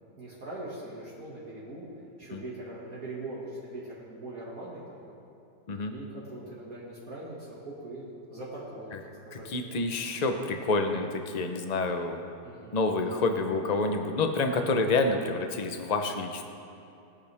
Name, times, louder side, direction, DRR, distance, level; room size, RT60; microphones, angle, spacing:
voice 1, 0.2-1.9 2.2-5.1 5.9-9.5 12.4-12.7, right 2 dB, 50° right, -7 dB, 2.6 m, -41 dB
voice 2, 9.3-12.2 12.7-16.5, left 3 dB, 35° left, 5 dB, 0.7 m, -28 dB
20.0 x 10.0 x 3.6 m, 2.7 s
omnidirectional pair, 1.9 m